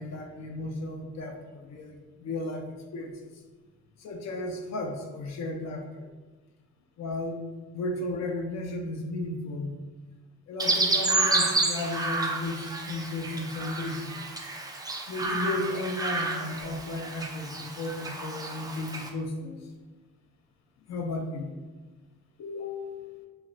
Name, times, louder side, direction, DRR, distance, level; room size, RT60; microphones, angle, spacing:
voice 1, 0.0-3.3 4.0-6.1 7.0-7.4 7.7-9.8 10.5-14.2 15.1-19.6 20.9-21.5 22.4-23.2, left 2 dB, 60° left, 2 dB, 0.6 m, -34 dB
Chirp tweet, 10.6-19.1, right 2 dB, 15° right, 0.3 m, -30 dB
2.4 x 2.1 x 3.7 m, 1.3 s
cardioid pair, 90°, 30 cm